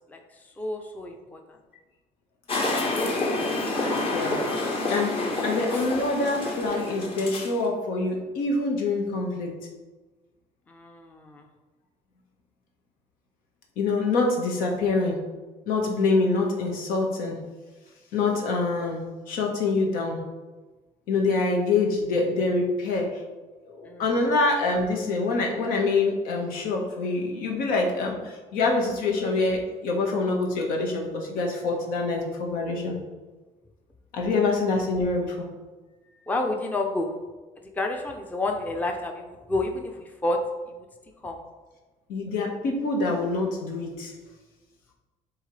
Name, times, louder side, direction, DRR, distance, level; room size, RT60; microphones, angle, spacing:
voice 1, 0.6-1.4 10.7-11.4 23.8-24.3 36.3-37.1 37.8-40.4 40.7-40.8 41.2-41.4, left 2 dB, 10° left, 3 dB, 0.5 m, -30 dB
sound 1, 2.5-7.6, left 2 dB, 40° left, 1.2 m, -28 dB
voice 2, 3.8-5.2 5.4-9.6 13.8-15.2 15.7-17.4 18.1-20.2 21.1-23.2 23.7-33.0 34.1-35.4 42.1-44.1, left 3 dB, 85° left, 1 dB, 1.4 m, -25 dB
10.5 x 3.7 x 3.2 m, 1.2 s
cardioid pair, 155°, 14 cm